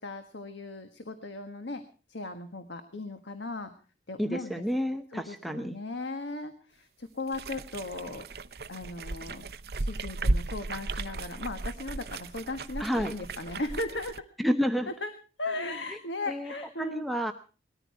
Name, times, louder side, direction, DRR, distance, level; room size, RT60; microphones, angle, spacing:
voice 1, 0.0-3.7 4.1-4.6 5.1-8.4 8.7-9.5 9.8-14.3 14.9-15.1 15.4-17.1, left 2 dB, 85° left, 7 dB, 1.5 m, -37 dB
voice 2, 4.2-5.8 12.8-13.1 14.4-14.9 16.3-16.5 16.8-17.3, equal, ahead, 7 dB, 0.8 m, -29 dB
sound 1, 7.3-14.2, right 2 dB, 60° right, 0.7 m, -35 dB
20.0 x 14.0 x 4.7 m, 0.38 s
head